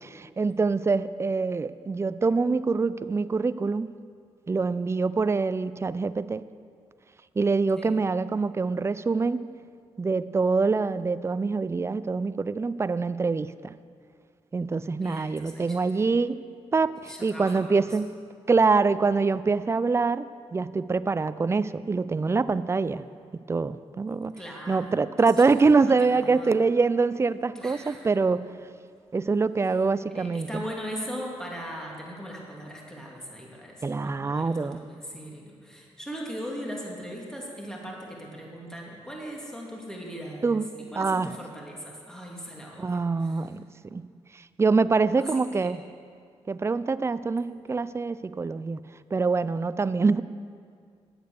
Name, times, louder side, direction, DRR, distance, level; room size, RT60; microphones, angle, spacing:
voice 1, 0.0-3.9 4.5-6.4 7.4-9.4 10.0-13.8 14.5-16.4 16.7-18.1 18.5-20.3 20.5-23.0 23.5-24.3 24.7-28.4 29.1-30.6 33.8-34.8 40.4-40.7 41.0-41.3 42.8-44.0 44.3-45.8 46.5-48.8 49.1-50.2, right 4 dB, 25° right, 15 dB, 0.4 m, -25 dB
voice 2, 14.9-16.0 17.1-17.8 24.4-24.8 25.9-26.6 27.5-28.1 30.1-43.4 45.2-45.7, equal, 5° left, -2 dB, 2.4 m, -39 dB
10.5 x 7.9 x 6.6 m, 2.2 s
cardioid pair, 65°, 11 cm